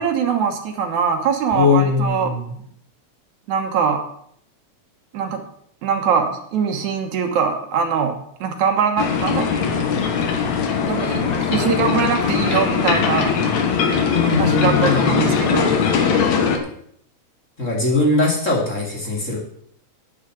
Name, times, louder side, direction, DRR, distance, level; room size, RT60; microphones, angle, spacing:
voice 1, 0.0-2.3 3.5-4.0 5.1-5.4 5.8-9.6 10.8-13.3 14.4-15.8, right 6 dB, 75° right, 5 dB, 2.6 m, -22 dB
voice 2, 1.5-2.5 14.1-15.4 17.6-19.4, left 3 dB, 25° left, -3 dB, 2.8 m, -20 dB
sound 1, 9.0-16.6, left 6 dB, 75° left, 2.6 m, -20 dB
9.5 x 7.4 x 7.9 m, 0.68 s
omnidirectional pair, 3.3 m